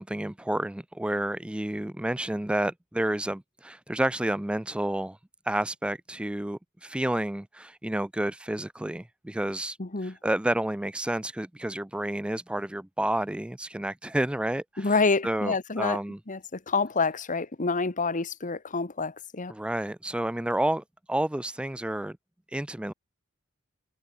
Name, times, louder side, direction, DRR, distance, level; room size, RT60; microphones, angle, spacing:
voice 1, 0.0-5.2 5.5-9.8 10.0-14.9 15.2-16.2 19.5-22.2 22.5-22.9, right 1 dB, 5° right, 0.4 m, -30 dB
voice 2, 9.8-10.1 14.8-16.0 16.3-19.5, left 4 dB, 35° left, 1.3 m, -27 dB
head